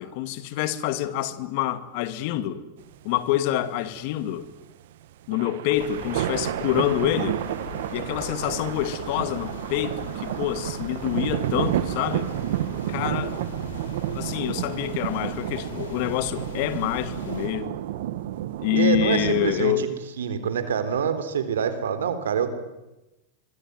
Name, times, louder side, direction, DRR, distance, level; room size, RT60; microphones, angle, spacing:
voice 1, 0.0-2.6 3.0-4.5 5.3-7.4 7.9-12.3 12.9-13.4 14.1-17.8 18.6-19.9, left 13 dB, 55° left, 2.3 m, -27 dB
sound 1, 2.8-19.6, right 13 dB, 70° right, 1.6 m, -31 dB
sound 2, 5.7-17.5, left 2 dB, 90° left, 7.7 m, -40 dB
voice 2, 18.7-19.9 20.2-22.5, right 7 dB, 90° right, 3.9 m, -25 dB
24.5 x 24.5 x 9.5 m
hypercardioid pair, 125°, 0 cm